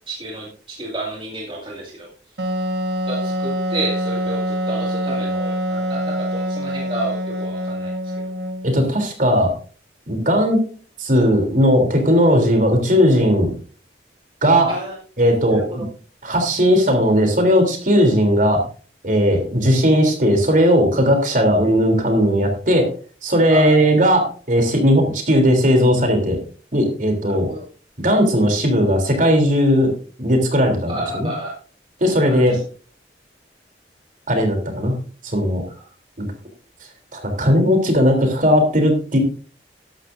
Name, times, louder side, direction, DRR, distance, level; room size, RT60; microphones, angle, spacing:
voice 1, 0.1-2.1 3.1-8.3 14.7-15.0 15.5-15.9 23.5-24.0 27.3-27.6 30.9-31.5 32.3-32.6 35.7-35.8, right 2 dB, 30° right, -3 dB, 2.3 m, -31 dB
Wind instrument woodwind instrument, 2.4-8.8, equal, 75° right, 1.7 m, -25 dB
voice 2, 8.6-9.5 10.1-10.6 11.0-13.5 14.4-14.7 15.2-15.8 16.2-18.6 19.0-22.9 23.2-26.4 26.7-27.5 28.0-29.9 30.2-31.3 32.0-32.6 34.3-34.9 35.2-35.6 36.2-36.3 37.1-39.2, equal, 45° right, 4 dB, 3.4 m, -17 dB
13.0 x 11.5 x 2.6 m, 0.40 s
head